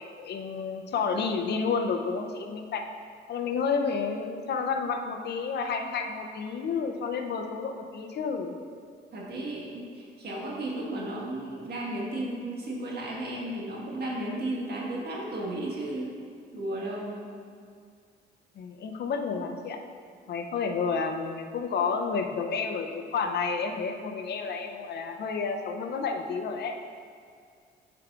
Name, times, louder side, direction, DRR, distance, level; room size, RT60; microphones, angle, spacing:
voice 1, 0.0-2.8 3.3-8.6 18.6-19.8 20.3-26.8, left 5 dB, 60° left, 4 dB, 0.6 m, -30 dB
voice 2, 9.1-16.1 16.5-17.2, right 1 dB, 55° right, -4 dB, 1.5 m, -34 dB
8.4 x 4.6 x 2.4 m, 2.2 s
cardioid pair, 90°, 20 cm